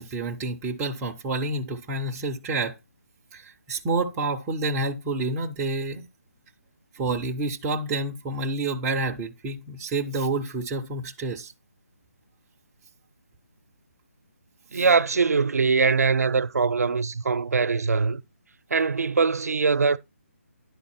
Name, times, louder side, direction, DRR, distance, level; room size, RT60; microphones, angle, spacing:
voice 1, 0.0-2.7 3.3-6.0 6.9-11.5 14.7-14.8, right 2 dB, 10° right, 0.4 m, -29 dB
voice 2, 14.7-18.2 18.7-20.0, right 4 dB, 85° right, 0.5 m, -22 dB
10.5 x 4.1 x 4.1 m
hypercardioid pair, 165°, 8 cm